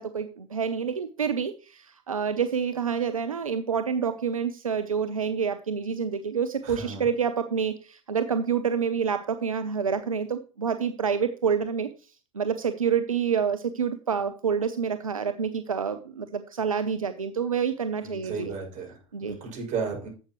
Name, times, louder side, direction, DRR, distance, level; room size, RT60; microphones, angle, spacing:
voice 1, 0.0-11.9 12.3-18.5 19.1-19.4, right 6 dB, 90° right, 10 dB, 0.7 m, -28 dB
voice 2, 6.6-7.1 18.0-20.1, right 5 dB, 45° right, 0 dB, 6.4 m, -34 dB
11.5 x 8.0 x 3.1 m, 0.35 s
hypercardioid pair, 85°, 17 cm